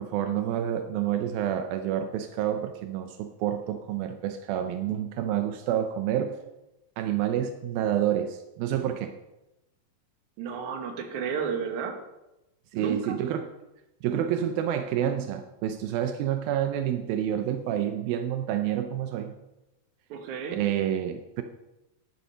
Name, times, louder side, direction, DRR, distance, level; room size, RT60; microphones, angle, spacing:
voice 1, 0.0-6.4 7.0-9.1 12.8-13.5 14.0-19.4 20.5-21.4, right 10 dB, 85° right, 7 dB, 2.5 m, -28 dB
voice 2, 10.4-12.0 12.7-13.2 20.1-20.6, right 6 dB, 60° right, 4 dB, 2.6 m, -32 dB
11.0 x 11.0 x 5.6 m, 0.95 s
omnidirectional pair, 4.2 m